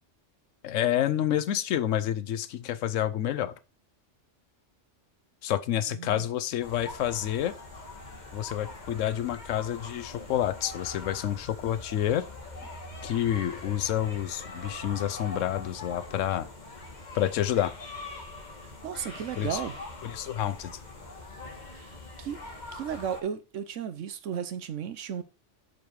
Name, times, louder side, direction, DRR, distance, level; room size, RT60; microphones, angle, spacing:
voice 1, 0.6-3.5 5.4-7.5 8.3-12.3 13.0-16.5 17.1-17.7 19.4-19.6 20.0-20.7, left 11 dB, 90° left, 1.0 m, -28 dB
voice 2, 5.9-6.3 18.6-19.8 21.7-21.9 22.2-22.4 22.7-25.2, right 8 dB, 80° right, 1.1 m, -34 dB
sound 1, 6.6-23.2, left 2 dB, 35° left, 1.7 m, -43 dB
8.1 x 5.2 x 4.7 m
omnidirectional pair, 1.3 m